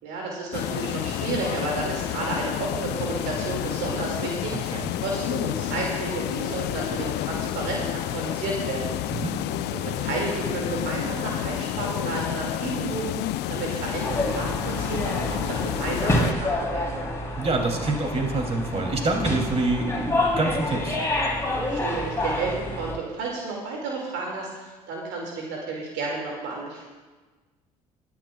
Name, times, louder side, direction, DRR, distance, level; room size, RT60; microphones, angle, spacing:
voice 1, 0.0-8.9 9.7-13.2 13.5-17.0 21.7-26.8, right 3 dB, 60° right, -1 dB, 2.3 m, -32 dB
sound 1, 0.5-16.3, left 12 dB, 55° left, 0.6 m, -30 dB
sound 2, 14.0-22.9, left 1 dB, 15° left, 3.4 m, -28 dB
voice 2, 17.4-21.0, right 2 dB, 30° right, 1 dB, 2.9 m, -26 dB
22.0 x 10.5 x 2.4 m, 1.3 s
figure-of-eight pair, 55°, 20 cm